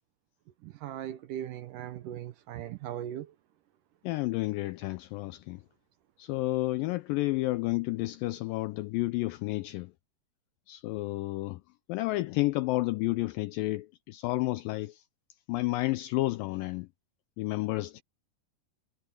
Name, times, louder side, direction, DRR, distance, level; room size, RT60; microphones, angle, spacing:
voice 1, 0.6-3.4, right 11 dB, 75° right, 2.0 m, -39 dB
voice 2, 4.0-5.6 6.2-9.9 10.7-11.6 11.9-15.0 15.5-16.9 17.4-18.0, left 19 dB, 85° left, 2.0 m, -31 dB
omnidirectional pair, 4.5 m